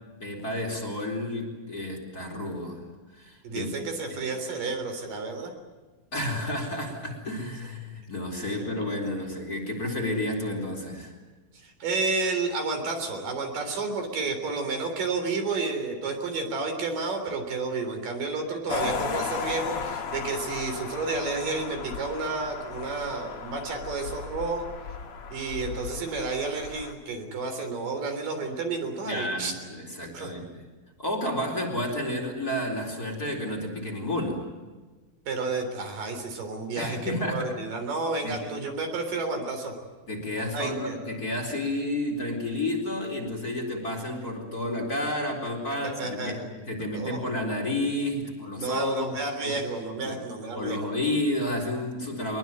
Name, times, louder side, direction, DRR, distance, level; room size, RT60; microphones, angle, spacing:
voice 1, 0.2-2.9 3.1-3.8 4.1-4.2 6.1-11.2 29.1-30.6 31.0-34.4 36.8-37.6 38.2-38.5 40.1-46.4 46.7-49.2 49.4-49.6 50.0-50.2 50.5-52.4, left 1 dB, 25° left, 3 dB, 4.4 m, -31 dB
voice 2, 3.4-5.5 8.4-8.9 11.6-24.7 25.3-29.5 30.1-30.3 35.3-39.7 40.5-41.0 46.0-46.5 46.9-47.2 48.6-50.9, right 3 dB, 65° right, 5 dB, 5.2 m, -31 dB
sound 1, 18.7-26.9, left 6 dB, 45° left, 2.3 m, -35 dB
24.5 x 21.5 x 9.5 m, 1.3 s
omnidirectional pair, 4.1 m